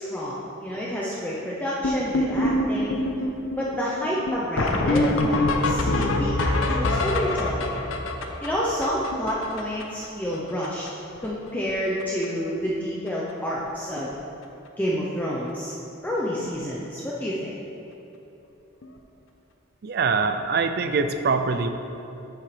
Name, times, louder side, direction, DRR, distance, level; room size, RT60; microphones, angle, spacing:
voice 1, 0.0-3.0 3.6-7.8 8.4-10.8 11.2-14.1 14.8-15.7 16.0-17.5, equal, 10° left, -6 dB, 0.6 m, -29 dB
sound 1, 1.8-10.1 10.3-10.4 10.6-10.9 11.2-11.7 12.0-12.3 13.1-13.2 13.6-13.7 14.0-14.1 16.4-16.5 18.8-18.9, left 2 dB, 85° left, 0.7 m, -25 dB
voice 2, 19.8-21.7, right 4 dB, 50° right, 8 dB, 0.4 m, -23 dB
8.8 x 7.4 x 3.2 m, 2.9 s
head